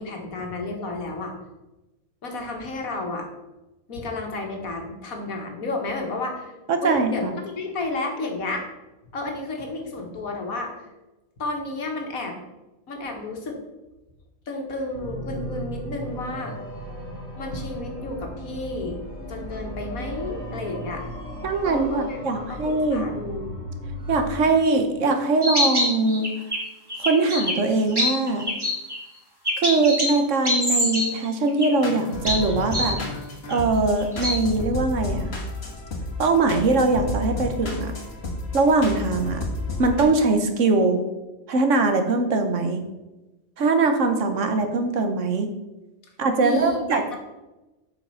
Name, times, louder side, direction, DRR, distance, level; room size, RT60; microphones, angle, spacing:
voice 1, 0.0-1.3 2.2-3.3 3.9-6.5 6.8-8.7 9.1-10.7 11.4-12.4 12.9-13.6 14.5-16.5 17.4-19.0 19.3-21.0 21.6-23.6 46.4-47.0, left 2 dB, 85° left, 2 dB, 2.0 m, -31 dB
voice 2, 6.7-7.3 21.4-23.1 24.1-26.3 27.0-28.5 29.6-33.0 33.5-35.3 36.2-37.9 38.5-39.5 39.8-41.0 41.5-42.8 43.6-45.5 46.2-47.2, right 3 dB, 65° right, 6 dB, 1.3 m, -22 dB
sound 1, 15.0-24.5, equal, 40° right, 2.4 m, -36 dB
sound 2, 25.4-26.6 26.9-27.5 27.9-29.0 29.5-30.1 30.4-31.1 31.5-31.8 32.2-33.0 33.5-33.6 34.0-34.3, left 1 dB, 15° right, 2.5 m, -24 dB
sound 3, 31.8-40.0, left 2 dB, 50° left, 1.8 m, -31 dB
7.6 x 5.8 x 5.6 m, 1.0 s
omnidirectional pair, 1.4 m